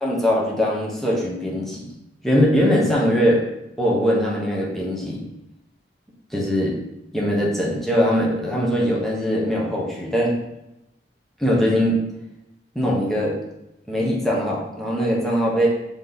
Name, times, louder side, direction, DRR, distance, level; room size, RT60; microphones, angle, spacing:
voice 1, 0.0-1.9 2.2-3.4 3.8-5.2 6.3-6.8 7.1-10.3 11.4-12.0 12.7-13.3 13.9-15.7, equal, ahead, -4 dB, 0.8 m, -21 dB
3.5 x 2.9 x 3.8 m, 0.91 s
head